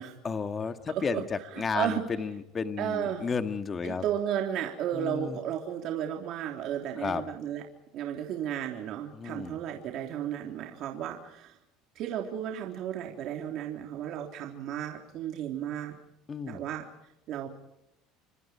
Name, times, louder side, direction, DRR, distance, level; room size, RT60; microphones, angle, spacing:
voice 1, 0.2-4.0 4.9-5.4 7.0-7.2 9.1-9.6 16.3-16.6, left 5 dB, 25° left, 8 dB, 1.9 m, -32 dB
voice 2, 0.9-2.0 2.8-3.3 3.8-7.6 7.9-11.6 12.0-16.0 16.5-16.9 17.3-17.5, right 10 dB, 55° right, 2 dB, 3.5 m, -34 dB
29.0 x 26.5 x 4.5 m, 0.83 s
cardioid pair, 140°, 0 cm